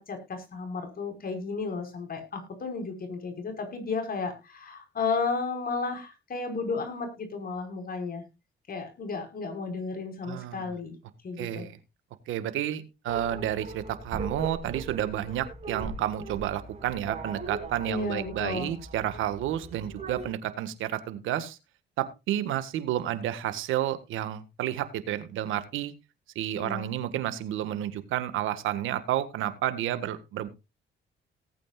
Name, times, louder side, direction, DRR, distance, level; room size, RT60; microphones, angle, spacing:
voice 1, 0.0-8.2 8.7-10.9 11.2-11.7 17.9-18.7 26.6-26.9, left 4 dB, 50° left, 5 dB, 5.2 m, -33 dB
voice 2, 10.2-10.6 11.4-11.8 12.3-21.6 22.0-25.9 26.3-30.5, right 12 dB, 90° right, 12 dB, 1.6 m, -31 dB
sound 1, 13.1-20.3, right 3 dB, 35° right, 5.5 m, -40 dB
18.5 x 8.7 x 2.4 m, 0.26 s
cardioid pair, 90°, 20 cm